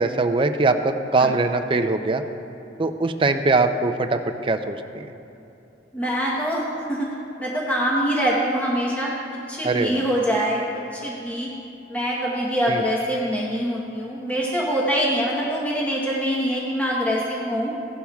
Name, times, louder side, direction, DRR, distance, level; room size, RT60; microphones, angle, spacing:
voice 1, 0.0-2.2 2.8-5.1 9.6-10.1 12.7-12.8, right 3 dB, 30° right, 8 dB, 0.4 m, -22 dB
voice 2, 5.9-7.1 7.4-11.5 11.9-17.7, equal, 10° left, -5 dB, 1.0 m, -24 dB
16.5 x 11.5 x 2.3 m, 2.8 s
head